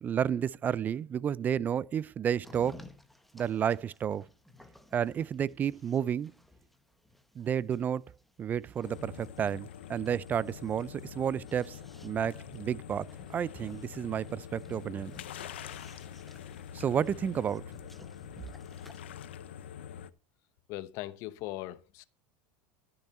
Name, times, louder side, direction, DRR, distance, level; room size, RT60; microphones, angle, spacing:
voice 1, 0.0-2.8 3.3-4.2 4.9-6.3 7.4-8.1 8.4-15.1 16.7-17.6, right 8 dB, 30° right, 0.4 m, -31 dB
sound 1, 2.4-19.0, left 1 dB, ahead, 1.3 m, -56 dB
sound 2, 8.8-20.1, left 9 dB, 90° left, 0.7 m, -45 dB
voice 2, 20.7-22.0, left 16 dB, 60° left, 0.9 m, -39 dB
13.0 x 7.0 x 4.3 m
supercardioid pair, 110°, 6 cm